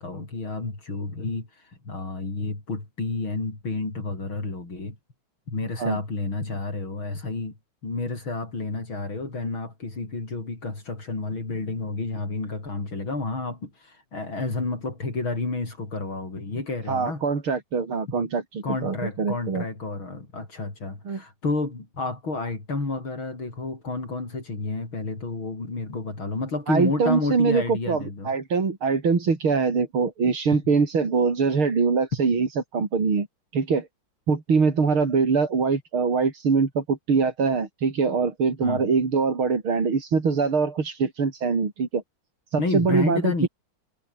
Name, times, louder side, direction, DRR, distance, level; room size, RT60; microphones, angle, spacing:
voice 1, 0.0-1.5 1.9-5.0 5.5-7.5 7.8-17.2 18.6-28.4 38.6-38.8 42.6-43.5, left 3 dB, 75° left, 6.9 m, -30 dB
voice 2, 16.9-19.6 21.1-21.2 26.7-32.5 32.7-33.3 33.5-33.9 34.3-42.0 42.5-43.5, right 5 dB, 85° right, 4.3 m, -23 dB
omnidirectional pair, 2.2 m